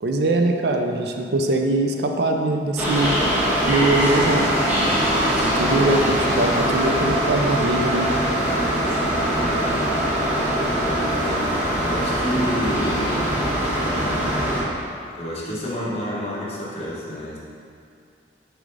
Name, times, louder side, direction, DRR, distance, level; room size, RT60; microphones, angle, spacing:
voice 1, 0.0-3.1 3.7-4.5 5.4-8.1, right 2 dB, 65° right, 4 dB, 0.4 m, -22 dB
sound 1, 2.8-14.6, right 1 dB, 10° right, 1.2 m, -22 dB
voice 2, 8.8-10.0 10.6-11.5 11.8-13.2 13.8-14.5 15.1-17.4, equal, 35° left, -6 dB, 1.2 m, -30 dB
6.2 x 4.7 x 3.9 m, 2.4 s
head